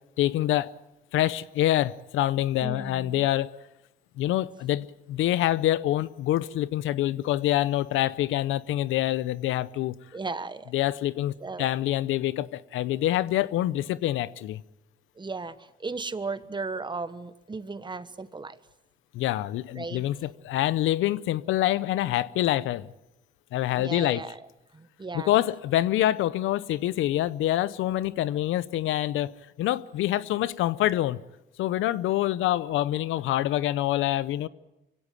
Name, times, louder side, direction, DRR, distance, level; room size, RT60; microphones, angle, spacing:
voice 1, 0.2-0.7 1.1-3.6 4.2-9.9 10.7-14.6 19.1-22.9 23.5-24.2 25.1-29.3 29.6-31.2 31.6-34.5, left 14 dB, 85° left, 0.7 m, -26 dB
voice 2, 2.6-3.3 10.1-10.7 11.4-11.7 15.2-18.6 19.7-20.0 23.7-24.4 24.7-25.3, right 3 dB, 25° right, 1.3 m, -36 dB
24.5 x 16.5 x 9.1 m
cardioid pair, 90°, 20 cm